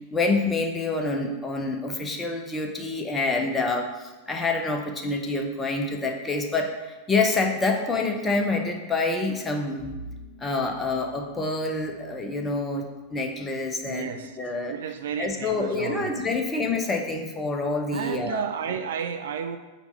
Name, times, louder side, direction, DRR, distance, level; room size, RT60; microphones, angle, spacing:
voice 1, 0.1-9.9 10.4-14.1 14.4-14.8 15.2-18.8, left 3 dB, 15° left, 3 dB, 0.7 m, -27 dB
Bowed string instrument, 9.8-14.9, right 1 dB, 25° right, 2.0 m, -47 dB
voice 2, 13.8-14.4 14.7-16.2 17.9-19.6, right 8 dB, 60° right, 8 dB, 0.3 m, -32 dB
4.4 x 4.0 x 5.5 m, 1.2 s
figure-of-eight pair, 90°, 0 cm